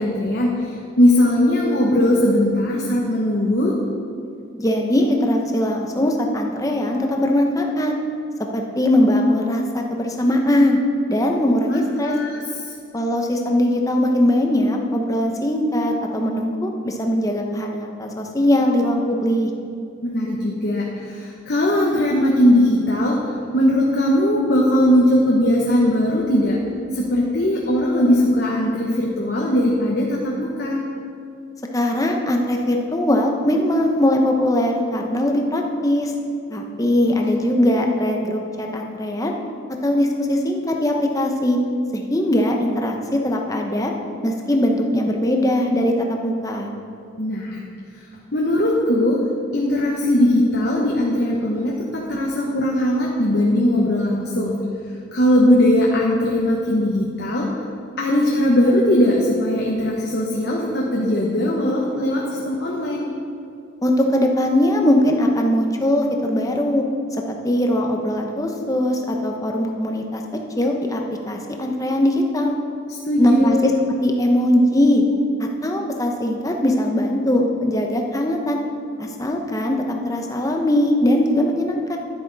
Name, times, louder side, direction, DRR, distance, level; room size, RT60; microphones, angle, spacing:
voice 1, 0.0-3.7 12.0-12.4 20.0-23.2 23.5-26.6 26.9-30.8 47.2-47.6 48.3-49.2 49.5-54.6 55.1-57.5 58.0-63.1 72.9-73.6, left 1 dB, 50° left, -3 dB, 1.1 m, -19 dB
voice 2, 4.6-7.9 8.5-10.8 11.1-12.1 12.9-19.5 31.7-36.1 36.5-39.3 39.8-41.6 41.9-43.9 44.2-46.7 63.8-66.8 67.3-70.2 70.6-71.0 71.3-72.5 73.2-73.7 74.0-75.0 75.4-78.6 79.0-79.8 80.0-82.0, left 1 dB, 15° left, 2 dB, 0.8 m, -20 dB
11.0 x 10.0 x 4.0 m, 2.4 s
head